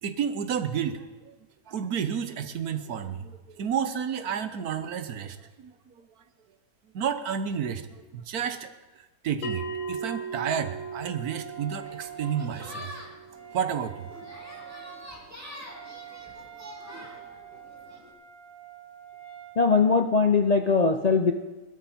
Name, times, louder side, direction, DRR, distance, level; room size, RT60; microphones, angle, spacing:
voice 1, 0.0-1.3 1.7-5.7 6.0-6.1 6.9-7.9 8.1-8.7 9.2-12.9 13.5-14.1, right 8 dB, 80° right, 10 dB, 1.4 m, -31 dB
Bell, 9.4-14.5, right 4 dB, 90° left, 1.6 m, -38 dB
Wind instrument woodwind instrument, 9.6-19.6, right 10 dB, 30° right, 2.0 m, -47 dB
sound 1, 11.8-18.1, left 1 dB, 10° right, 2.4 m, -45 dB
voice 2, 19.6-21.3, left 4 dB, 45° left, 4 dB, 0.5 m, -21 dB
20.0 x 12.5 x 4.3 m, 1.2 s
omnidirectional pair, 1.6 m